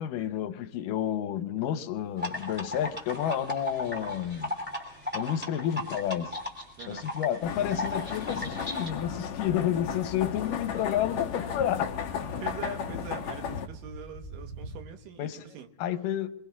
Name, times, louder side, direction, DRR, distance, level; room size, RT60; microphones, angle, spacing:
voice 1, 0.0-4.5 5.1-6.4 6.9-11.9 15.2-15.4 15.8-16.4, left 10 dB, 85° left, 2.4 m, -30 dB
sound 1, 2.0-10.1 10.5-14.8, right 1 dB, 60° right, 6.3 m, -50 dB
sound 2, 2.2-8.9, left 1 dB, 5° right, 2.5 m, -36 dB
voice 2, 6.8-7.1 12.4-15.7, right 6 dB, 90° right, 2.9 m, -42 dB
sound 3, 7.4-13.7, left 7 dB, 60° left, 1.7 m, -34 dB
26.5 x 21.5 x 2.4 m
omnidirectional pair, 3.8 m